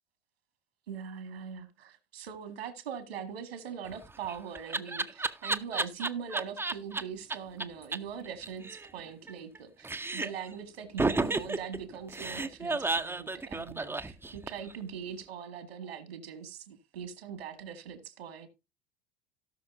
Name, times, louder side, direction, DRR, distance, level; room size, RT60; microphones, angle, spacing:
voice 1, 0.9-18.5, right 7 dB, 70° right, 2.1 m, -41 dB
Laughter, 3.9-7.0 7.3-7.4 7.6-7.7 7.9-8.0 8.3-9.6 9.8-10.5 11.0-14.7, right 3 dB, 5° right, 0.7 m, -32 dB
17.5 x 6.1 x 2.6 m
figure-of-eight pair, 75°, 31 cm